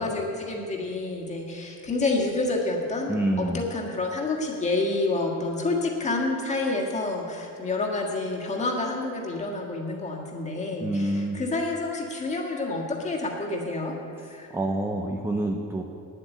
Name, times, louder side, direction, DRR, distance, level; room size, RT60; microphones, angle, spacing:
voice 1, 0.0-13.9 14.2-14.5, left 2 dB, 20° left, -1 dB, 1.6 m, -28 dB
voice 2, 3.1-3.6 10.8-11.4 14.2-15.8, right 1 dB, 10° right, 3 dB, 0.4 m, -27 dB
9.8 x 8.1 x 9.1 m, 2.6 s
cardioid pair, 175°, 31 cm